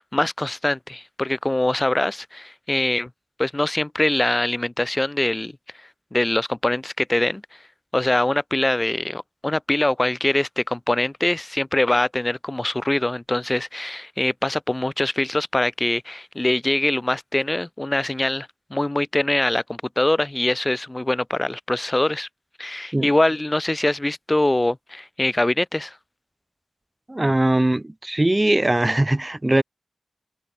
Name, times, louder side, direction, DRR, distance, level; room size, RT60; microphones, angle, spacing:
voice 1, 0.0-3.1 3.4-5.5 6.1-7.4 7.9-22.3 22.6-25.9, left 1 dB, 20° left, 1.5 m, -23 dB
voice 2, 27.1-29.6, right 1 dB, 20° right, 1.6 m, -20 dB
wide cardioid pair, 95°, 0 cm